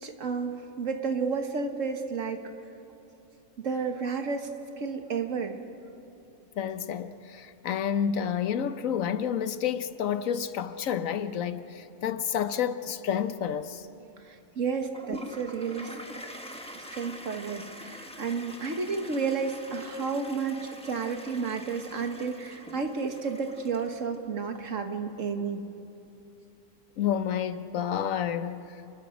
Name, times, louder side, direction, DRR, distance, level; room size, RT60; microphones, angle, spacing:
voice 1, 0.0-2.4 3.6-4.5 4.8-5.6 14.2-16.0 16.7-25.6, right 5 dB, 75° right, 1.8 m, -31 dB
voice 2, 6.6-13.9 27.0-28.7, left 8 dB, 90° left, 1.2 m, -30 dB
Toilet flush, 14.9-24.2, equal, 5° left, 1.3 m, -44 dB
29.5 x 21.0 x 5.1 m
omnidirectional pair, 1.3 m